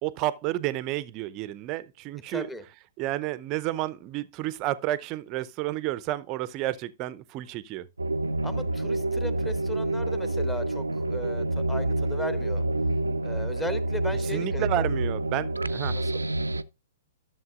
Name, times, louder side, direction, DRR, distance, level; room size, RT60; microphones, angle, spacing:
voice 1, 0.0-2.5 3.0-7.9 14.3-16.0, right 15 dB, 30° right, 0.6 m, -31 dB
voice 2, 2.3-2.6 8.4-12.6 13.2-14.9 15.9-16.2, left 1 dB, 5° left, 1.0 m, -37 dB
sound 1, 8.0-16.6, right 2 dB, 80° right, 0.4 m, -28 dB
13.5 x 7.2 x 2.4 m
figure-of-eight pair, 110°, 0 cm